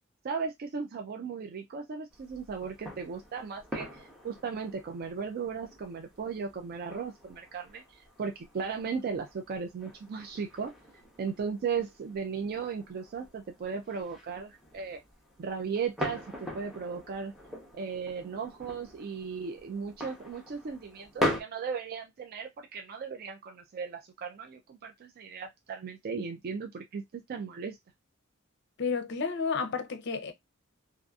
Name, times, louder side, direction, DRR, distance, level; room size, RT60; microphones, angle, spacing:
voice 1, 0.2-10.7 11.2-15.0 15.4-17.3 17.7-27.8, right 5 dB, 45° right, 0.3 m, -36 dB
sound 1, 2.1-21.4, left 1 dB, ahead, 0.7 m, -41 dB
voice 2, 28.8-30.3, left 5 dB, 55° left, 0.5 m, -31 dB
2.6 x 2.4 x 2.3 m
head